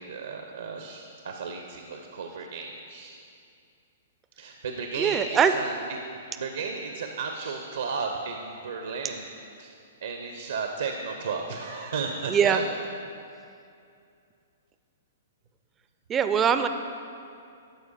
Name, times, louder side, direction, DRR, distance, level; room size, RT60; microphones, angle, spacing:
voice 1, 0.0-3.3 4.4-6.0 6.4-9.3 9.6-12.6, right 5 dB, 75° right, 4 dB, 0.6 m, -34 dB
voice 2, 5.0-5.5 12.3-12.6 16.1-16.7, right 7 dB, 20° right, 9 dB, 0.4 m, -22 dB
12.0 x 4.8 x 4.2 m, 2.5 s
hypercardioid pair, 120°, 0 cm